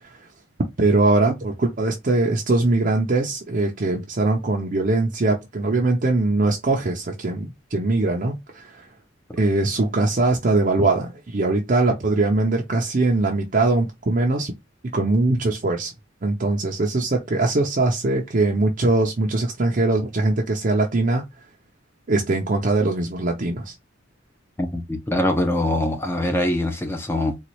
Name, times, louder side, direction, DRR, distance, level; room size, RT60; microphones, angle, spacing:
voice 1, 0.8-8.9 9.4-14.5 14.9-15.9 16.2-21.2 22.1-23.7, right 2 dB, 40° right, 0.6 m, -21 dB
voice 2, 24.6-27.4, left 1 dB, 10° left, 0.6 m, -23 dB
4.0 x 2.3 x 3.0 m
head